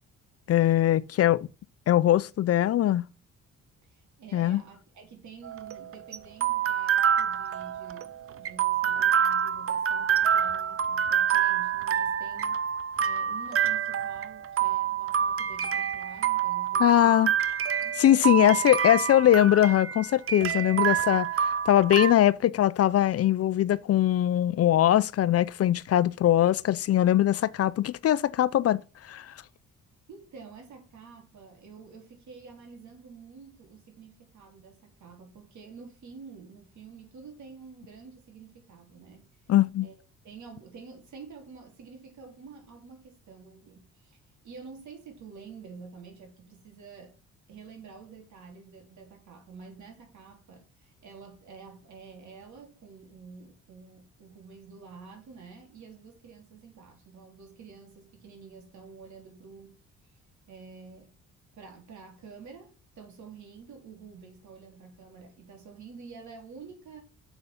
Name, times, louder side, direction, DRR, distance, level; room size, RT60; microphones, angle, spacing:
voice 1, 0.5-1.5 1.9-3.1 4.3-4.6 16.8-17.3 18.0-28.8 29.1-29.3 39.5-39.9, left 12 dB, 55° left, 0.5 m, -22 dB
voice 2, 3.8-17.2 17.8-18.0 18.3-18.8 29.9-39.3 39.8-39.9 40.2-44.2 44.4-47.2 47.5-59.8 60.5-61.1 61.6-67.0, right 5 dB, 70° right, 3.8 m, -48 dB
sound 1, 5.4-22.1, right 8 dB, 50° right, 0.8 m, -27 dB
7.0 x 6.4 x 7.1 m
cardioid pair, 90°, 30 cm